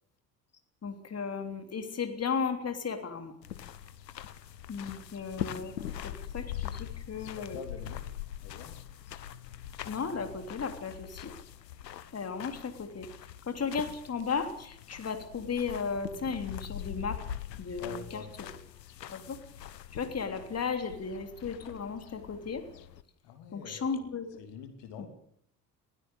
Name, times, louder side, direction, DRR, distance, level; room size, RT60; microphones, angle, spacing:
voice 1, 0.8-3.3 4.7-7.6 9.8-11.3 12.1-13.1 13.4-17.2 17.6-18.5 19.1-19.4 19.9-22.6 23.5-24.3 25.0-25.1, left 5 dB, 30° left, 7 dB, 3.4 m, -35 dB
sound 1, 3.4-23.0, left 10 dB, 80° left, 1.2 m, -43 dB
voice 2, 7.3-8.0 8.4-8.8 17.8-18.5 23.2-24.0 24.4-25.1, left 7 dB, 55° left, 7 dB, 2.9 m, -45 dB
21.0 x 16.0 x 8.5 m, 0.67 s
figure-of-eight pair, 55°, 49 cm